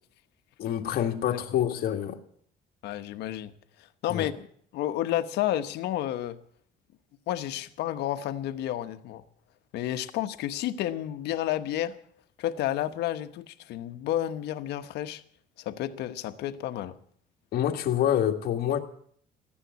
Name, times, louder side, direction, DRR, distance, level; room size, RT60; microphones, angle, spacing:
voice 1, 0.6-2.2 4.1-4.3 17.5-18.8, left 10 dB, 65° left, 3 dB, 1.9 m, -27 dB
voice 2, 1.3-1.7 2.8-3.5 3.8-4.5 4.7-6.4 7.3-9.2 9.7-12.0 12.4-15.2 15.6-17.0, left 12 dB, 80° left, 9 dB, 1.1 m, -31 dB
15.0 x 10.0 x 9.5 m, 0.63 s
cardioid pair, 110°, 17 cm